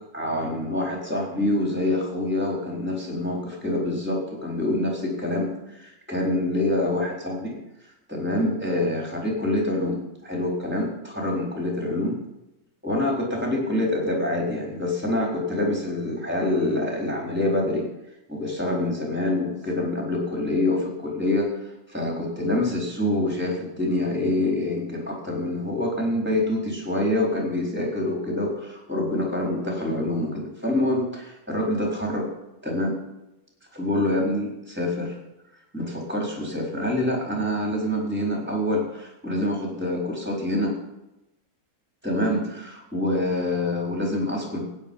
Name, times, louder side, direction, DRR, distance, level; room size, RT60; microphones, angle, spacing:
voice 1, 0.1-7.6 8.1-12.2 12.8-17.9 18.3-21.6 21.9-32.3 32.6-33.0 33.7-35.1 35.7-40.7 42.0-44.6, left 1 dB, 5° right, -1 dB, 4.1 m, -26 dB
16.0 x 9.9 x 5.5 m, 0.92 s
omnidirectional pair, 2.2 m